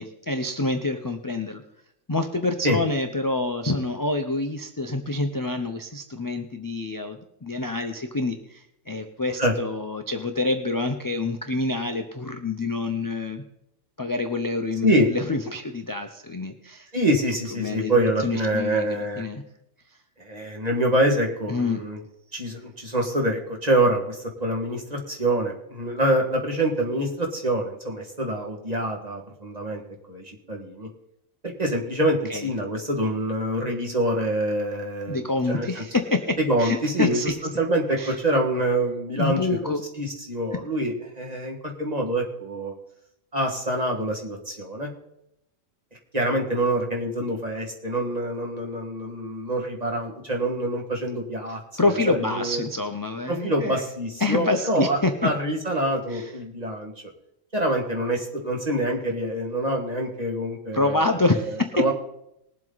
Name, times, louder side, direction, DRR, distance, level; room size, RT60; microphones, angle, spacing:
voice 1, 0.0-1.6 2.1-13.4 14.0-16.9 17.6-19.4 21.5-21.8 32.3-32.5 35.1-37.3 38.0-38.1 39.2-39.8 51.8-53.8 54.2-55.3 56.1-56.3 60.7-61.7, left 2 dB, 25° left, 6 dB, 0.4 m, -27 dB
voice 2, 16.9-19.2 20.2-22.0 22.3-29.8 30.1-30.9 31.6-35.8 36.4-37.3 37.6-42.7 43.3-44.9 46.1-52.6 53.3-56.9 57.5-61.4 61.7-61.9, right 1 dB, 30° right, 0 dB, 1.9 m, -26 dB
20.0 x 7.7 x 4.0 m, 0.80 s
omnidirectional pair, 1.5 m